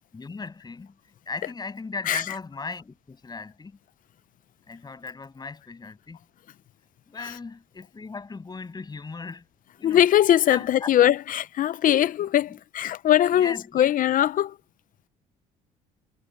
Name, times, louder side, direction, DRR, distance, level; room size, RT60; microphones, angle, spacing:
voice 1, 0.1-1.0 1.3-3.8 4.7-6.2 7.1-9.5 9.8-10.0 10.5-10.9 13.3-13.9, left 4 dB, 25° left, 7.7 m, -37 dB
voice 2, 9.8-14.6, left 11 dB, 55° left, 0.7 m, -21 dB
cardioid pair, 110°, 17 cm